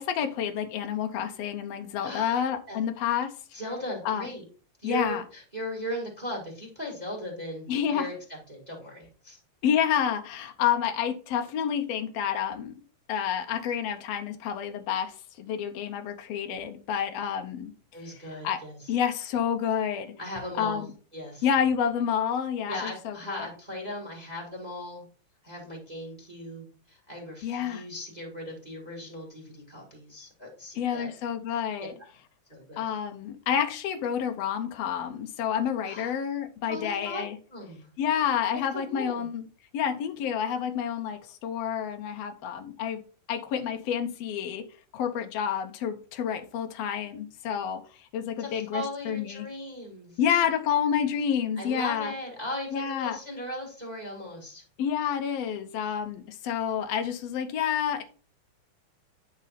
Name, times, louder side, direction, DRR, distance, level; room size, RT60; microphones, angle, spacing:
voice 1, 0.0-3.3 4.0-4.3 4.8-5.2 7.7-8.1 9.6-12.7 13.1-17.7 18.1-18.6 18.9-20.1 20.6-20.9 21.4-23.5 27.4-27.8 30.7-31.9 32.8-37.4 38.0-39.4 39.7-43.0 43.3-44.6 44.9-49.5 50.2-52.1 52.7-53.2 54.8-58.0, left 8 dB, 75° left, 1.5 m, -29 dB
voice 2, 2.0-2.4 2.7-2.8 3.5-4.4 4.8-9.4 17.9-18.9 20.2-20.9 21.1-21.5 22.7-25.0 25.4-31.1 32.0-32.1 32.5-32.8 35.8-36.1 36.7-37.2 37.5-37.9 38.7-39.3 48.4-50.2 51.6-54.6, left 1 dB, 15° right, 1.5 m, -38 dB
10.0 x 4.2 x 4.1 m
omnidirectional pair, 3.7 m